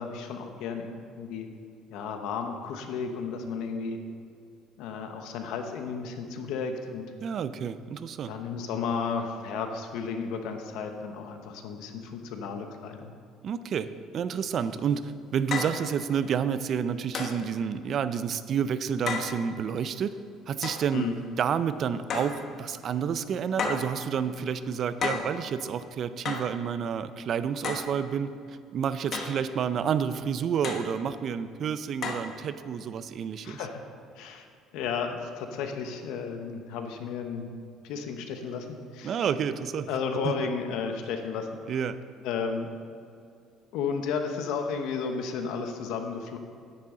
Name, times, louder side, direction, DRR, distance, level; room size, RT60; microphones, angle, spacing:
voice 1, 0.0-1.5 1.9-4.0 4.8-7.1 8.3-13.1 20.9-21.1 33.4-33.8 34.2-34.4 34.7-37.5 37.8-39.3 39.9-41.6 42.2-42.7 43.7-46.4, left 5 dB, 80° left, 5 dB, 1.0 m, -33 dB
voice 2, 7.2-8.3 13.4-20.1 20.5-21.1 21.4-33.6 39.0-39.9 40.2-40.5 41.7-42.0, right 7 dB, 45° right, 13 dB, 0.4 m, -29 dB
sound 1, 14.6-14.7 15.5-15.8 17.1-17.4 19.1-19.3 20.6-20.9 22.1-22.4 23.6-23.9 25.0-25.3 26.2-26.5 27.6-27.9 29.1-29.4 30.6-30.9 32.0-32.3, left 5 dB, 45° left, 1.2 m, -32 dB
10.0 x 9.6 x 3.8 m, 2.4 s
cardioid pair, 130°, 0 cm